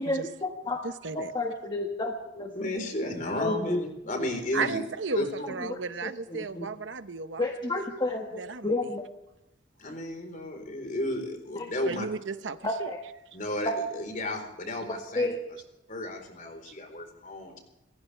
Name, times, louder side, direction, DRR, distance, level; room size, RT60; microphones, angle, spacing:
voice 1, 0.0-0.8 1.1-2.5 3.4-3.8 5.6-6.7 7.4-9.0 11.6-11.7 12.6-13.0 13.6-13.8 14.9-15.4, left 2 dB, 25° left, 1 dB, 1.5 m, -31 dB
voice 2, 0.8-1.3 4.5-7.4 7.7-7.8 8.4-8.7 11.8-12.9 16.7-16.8, right 4 dB, 70° right, 11 dB, 0.9 m, -34 dB
voice 3, 2.5-4.8 5.1-5.5 9.8-12.1 13.3-15.3 15.9-17.6, left 1 dB, 45° left, 5 dB, 4.1 m, -33 dB
28.5 x 15.0 x 3.4 m, 0.91 s
head